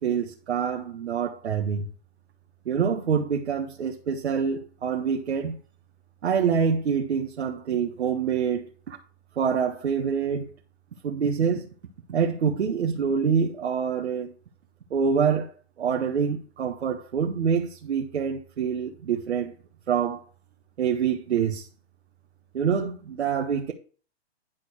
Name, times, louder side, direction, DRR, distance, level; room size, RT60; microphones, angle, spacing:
voice 1, 0.0-1.9 2.6-5.6 6.2-9.0 9.4-10.5 11.0-11.7 12.1-14.3 14.9-15.5 15.8-19.5 19.9-20.2 20.8-21.7 22.5-23.7, right 7 dB, 80° right, 1.5 m, -26 dB
10.5 x 4.4 x 6.5 m
hypercardioid pair, 145°, 33 cm